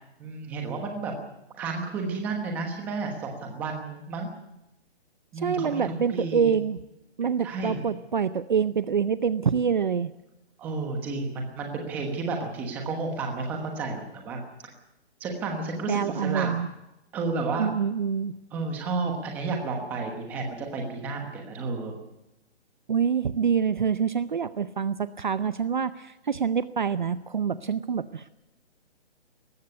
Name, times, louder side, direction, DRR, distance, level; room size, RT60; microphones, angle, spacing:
voice 1, 0.2-1.1 1.6-4.3 5.3-6.5 7.4-7.8 10.6-14.4 15.2-16.6 17.1-17.7 18.5-21.9, right 3 dB, 5° right, 2 dB, 1.1 m, -31 dB
voice 2, 5.4-6.8 7.2-10.1 15.9-16.7 17.6-18.3 22.9-28.3, right 7 dB, 45° right, 14 dB, 0.6 m, -26 dB
19.5 x 15.0 x 9.6 m, 0.93 s
hypercardioid pair, 175°, 33 cm